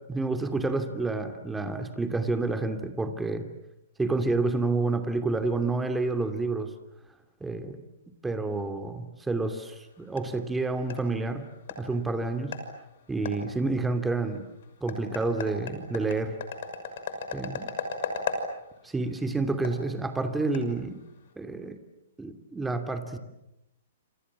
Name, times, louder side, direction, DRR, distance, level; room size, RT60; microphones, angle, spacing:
voice 1, 0.1-3.5 4.0-6.7 7.4-7.8 8.2-11.5 11.8-12.6 13.1-14.5 14.8-16.4 17.3-17.7 18.8-21.0 21.4-21.8 22.2-23.2, right 3 dB, 10° right, 8 dB, 2.7 m, -29 dB
sound 1, 9.5-21.3, left 5 dB, 60° left, 6.1 m, -39 dB
28.0 x 27.5 x 7.5 m, 0.88 s
hypercardioid pair, 130°, 0 cm